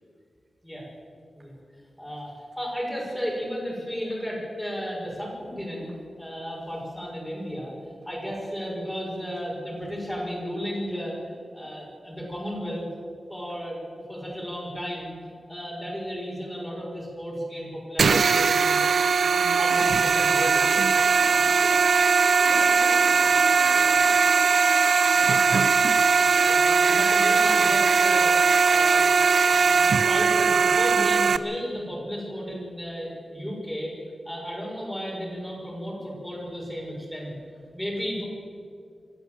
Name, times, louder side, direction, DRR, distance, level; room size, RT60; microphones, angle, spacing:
voice 1, 2.0-7.7 8.1-12.8 13.3-15.1 15.5-18.9 19.3-20.6 25.1-25.2 26.2-29.2 29.4-33.9 34.2-37.3 37.7-38.2, equal, 5° left, -3 dB, 6.1 m, -34 dB
sound 1, 18.0-31.4, right 5 dB, 70° right, 0.7 m, -20 dB
voice 2, 21.2-21.5 22.4-24.4 25.2-25.7, right 1 dB, 35° right, -3 dB, 3.2 m, -41 dB
24.5 x 14.0 x 7.9 m, 2.3 s
wide cardioid pair, 165°, 0 cm